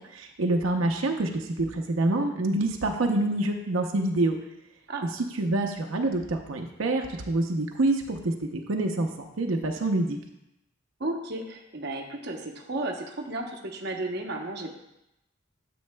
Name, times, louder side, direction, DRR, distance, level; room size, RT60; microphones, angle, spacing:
voice 1, 0.1-4.4 5.1-10.2, right 2 dB, 90° right, 3 dB, 0.7 m, -26 dB
voice 2, 11.0-14.7, right 2 dB, 55° right, 2 dB, 0.8 m, -33 dB
9.5 x 7.7 x 2.2 m, 0.88 s
head